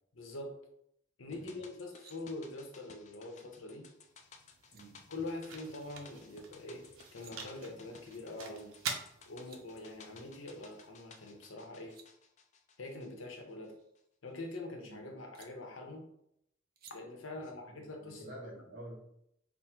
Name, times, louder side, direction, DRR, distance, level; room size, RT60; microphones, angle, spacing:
voice 1, 0.1-0.5 1.2-3.9 5.1-6.8 7.1-8.8 9.3-11.9 12.8-13.7 14.2-16.0 16.9-18.5, left 2 dB, 75° left, 2 dB, 0.8 m, -44 dB
sound 1, 1.3-13.7 13.9-14.0, left 4 dB, 35° left, 0.4 m, -58 dB
sound 2, 1.7-2.2 4.2-4.3 4.6-4.8 6.9-7.3 9.0-9.1 9.3-9.6 11.5-12.1 13.6-14.6 15.3-15.5 16.8-17.0, right 6 dB, 45° right, 0.5 m, -59 dB
sound 3, 3.9-12.0, right 5 dB, 85° right, 0.7 m, -47 dB
voice 2, 4.7-5.1 14.8-15.1 17.3-19.0, right 1 dB, 65° right, -2 dB, 1.4 m, -50 dB
3.5 x 2.1 x 4.4 m, 0.75 s
head